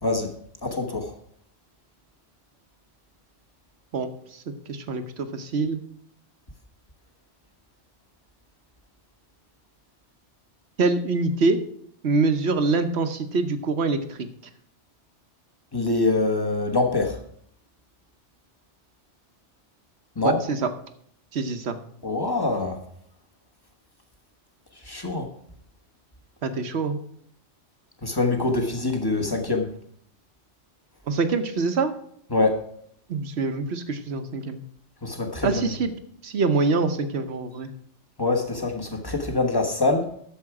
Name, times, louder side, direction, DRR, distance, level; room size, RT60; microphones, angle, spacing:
voice 1, 0.0-0.3 0.6-1.1 15.7-17.2 20.2-20.4 22.0-22.8 24.8-25.3 28.0-29.7 32.3-32.7 35.0-35.7 38.2-40.1, left 2 dB, 20° left, 3 dB, 1.2 m, -24 dB
voice 2, 3.9-4.4 4.7-5.8 10.8-11.6 12.0-14.3 20.2-20.6 21.3-21.8 26.4-27.0 31.1-31.9 33.1-34.6 35.4-35.9 36.2-37.7, right 3 dB, 65° right, 9 dB, 1.2 m, -25 dB
11.5 x 7.2 x 4.8 m, 0.66 s
omnidirectional pair, 1.2 m